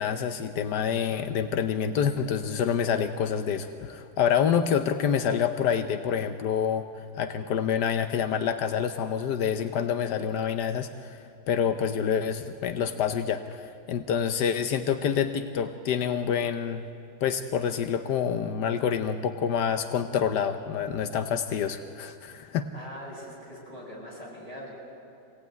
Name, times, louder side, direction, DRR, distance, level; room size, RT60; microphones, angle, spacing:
voice 1, 0.0-6.9 7.2-11.2 11.5-16.9 17.2-22.7, left 7 dB, 85° left, 8 dB, 1.4 m, -27 dB
voice 2, 22.7-24.7, equal, 20° left, -5 dB, 7.1 m, -42 dB
24.5 x 18.0 x 9.3 m, 2.6 s
omnidirectional pair, 1.7 m